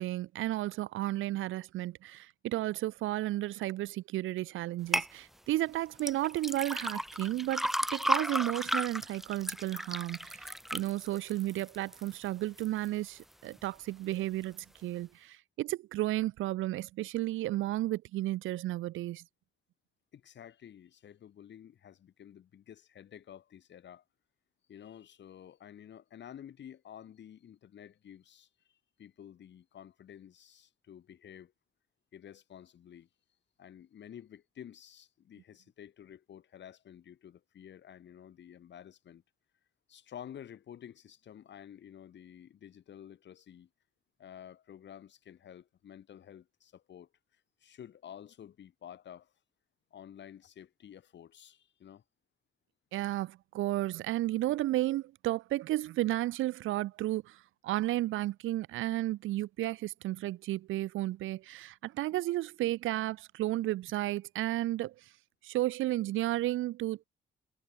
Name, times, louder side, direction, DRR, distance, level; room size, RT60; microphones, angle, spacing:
voice 1, 0.0-19.2 52.9-64.9 65.4-67.0, right 16 dB, 80° right, 0.8 m, -33 dB
sound 1, 4.9-5.1 6.0-12.1 12.6-13.1 13.6-13.7, equal, ahead, 1.7 m, -34 dB
voice 2, 20.1-24.0 24.7-31.5 32.1-33.1 33.6-39.2 39.9-43.7 44.2-47.1 47.6-49.3 49.9-52.0, left 9 dB, 65° left, 7.7 m, -51 dB
cardioid pair, 90°, 20 cm